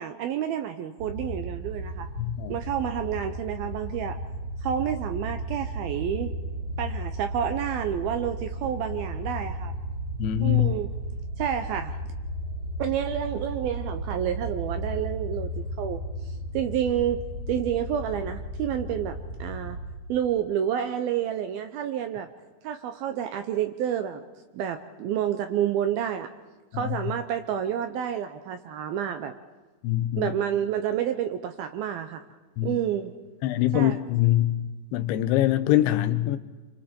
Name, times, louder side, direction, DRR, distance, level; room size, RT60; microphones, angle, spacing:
voice 1, 0.0-2.1 2.5-4.2 4.6-6.3 6.8-9.7 10.4-10.9 11.4-11.9 12.8-16.0 16.5-19.8 20.1-22.3 22.6-24.2 24.5-26.3 26.7-29.3 30.2-32.2 32.6-33.1 33.7-34.0, right 9 dB, 75° right, 2.3 m, -29 dB
sound 1, 1.0-19.8, right 1 dB, 45° right, 6.8 m, -34 dB
voice 2, 2.2-2.6 10.2-10.7 26.7-27.0 29.8-30.3 32.6-32.8 33.4-36.4, left 14 dB, 85° left, 3.3 m, -24 dB
28.5 x 25.5 x 4.4 m
omnidirectional pair, 5.2 m